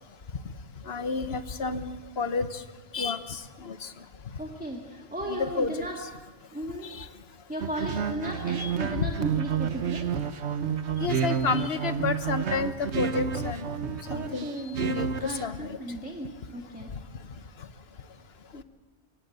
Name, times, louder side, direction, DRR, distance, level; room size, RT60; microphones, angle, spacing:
voice 1, 0.9-2.6 2.9-3.9 5.3-5.9 6.8-7.1 8.6-8.7 9.0-9.1 11.0-14.5 14.8-15.8 18.5-18.6, left 4 dB, 60° left, 11 dB, 1.3 m, -31 dB
voice 2, 4.4-6.0 6.5-6.9 7.5-10.1 14.1-14.8 15.2-16.9, equal, 5° right, -1 dB, 2.0 m, -36 dB
sound 1, 7.6-15.4, right 7 dB, 70° right, 1.3 m, -30 dB
24.0 x 17.0 x 8.1 m, 1.2 s
omnidirectional pair, 1.2 m